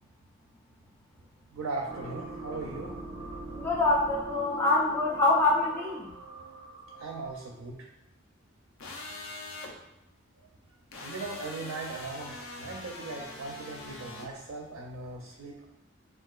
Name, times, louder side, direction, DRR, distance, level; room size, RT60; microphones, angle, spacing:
voice 1, 1.5-3.0 6.9-7.9 11.0-15.7, right 3 dB, 85° right, -1 dB, 0.4 m, -39 dB
sound 1, 1.9-7.5, right 2 dB, 35° right, 0.6 m, -42 dB
voice 2, 3.5-6.1, left 2 dB, 10° left, -6 dB, 0.4 m, -25 dB
sound 2, 8.8-9.7 10.9-14.3, left 2 dB, 80° left, 0.5 m, -42 dB
3.7 x 2.3 x 2.3 m, 0.92 s
head